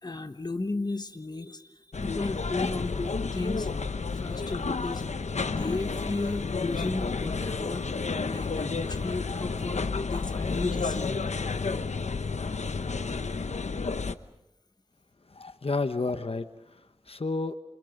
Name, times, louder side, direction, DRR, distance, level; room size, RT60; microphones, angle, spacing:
voice 1, 0.0-3.7 4.1-5.0 5.4-7.9 8.3-11.3, left 2 dB, 35° left, 8 dB, 1.3 m, -34 dB
sound 1, 1.9-14.1, left 4 dB, 85° left, 1.0 m, -31 dB
voice 2, 15.3-16.8 17.1-17.6, left 3 dB, 55° left, 9 dB, 1.2 m, -31 dB
28.0 x 27.0 x 5.3 m, 0.92 s
wide cardioid pair, 65°, 11 cm